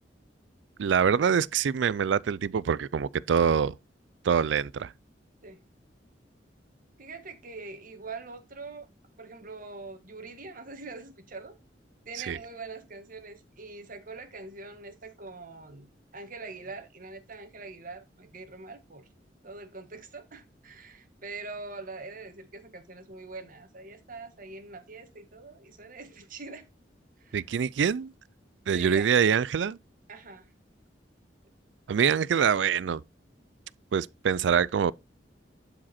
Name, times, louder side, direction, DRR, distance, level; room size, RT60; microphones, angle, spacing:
voice 1, 0.8-3.8 4.2-4.9 12.2-12.4 27.3-28.1 28.7-29.8 31.9-33.0 33.9-34.9, right 7 dB, 85° right, 0.4 m, -25 dB
voice 2, 7.0-8.9 9.2-11.5 12.0-19.1 19.4-26.7 27.2-27.4 28.7-29.1 30.1-30.5, right 3 dB, 50° right, 1.7 m, -43 dB
11.5 x 5.0 x 4.2 m
head